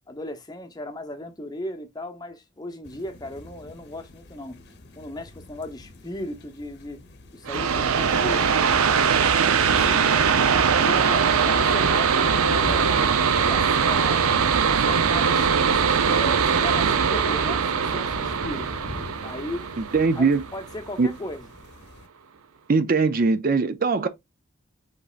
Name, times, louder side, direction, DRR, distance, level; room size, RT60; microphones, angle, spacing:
voice 1, 0.1-4.6 5.0-7.0 7.3-9.4 9.7-10.1 10.7-12.9 13.3-14.3 14.8-18.7 19.2-19.7 20.2-21.4, left 1 dB, 20° left, 0.7 m, -36 dB
sound 1, 2.8-22.1, left 2 dB, 50° left, 0.8 m, -43 dB
sound 2, 7.5-20.8, right 6 dB, 85° right, 0.6 m, -21 dB
voice 2, 19.8-20.4 21.0-21.1 22.7-24.1, right 4 dB, 40° right, 0.4 m, -21 dB
5.2 x 4.0 x 2.4 m
head